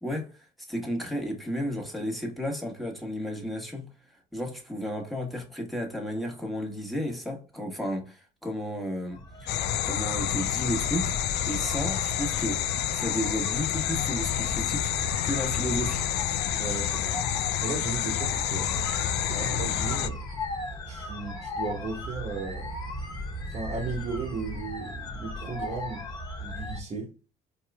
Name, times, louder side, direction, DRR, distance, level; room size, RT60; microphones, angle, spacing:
voice 1, 0.0-3.9 4.3-9.5 9.8-11.1 11.5-16.0 19.3-19.5, equal, ahead, 1.4 m, -33 dB
sound 1, 9.1-26.8, equal, 25° left, 1.4 m, -37 dB
sound 2, 9.5-20.1, left 12 dB, 75° left, 0.4 m, -29 dB
voice 2, 16.6-17.2 17.6-18.7 19.4-20.2 20.9-22.7 23.5-26.1 26.4-27.1, right 3 dB, 40° right, 1.2 m, -35 dB
4.6 x 3.0 x 2.3 m
cardioid pair, 110°, 17 cm